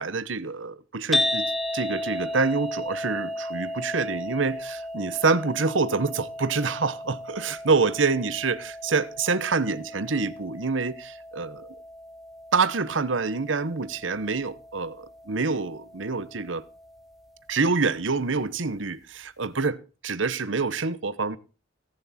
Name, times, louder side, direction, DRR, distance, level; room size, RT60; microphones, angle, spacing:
voice 1, 0.0-1.5 1.7-11.5 12.5-16.6 17.5-21.4, right 4 dB, 85° right, 1.0 m, -26 dB
sound 1, 1.1-17.4, left 1 dB, ahead, 2.5 m, -35 dB
17.0 x 11.0 x 4.3 m
head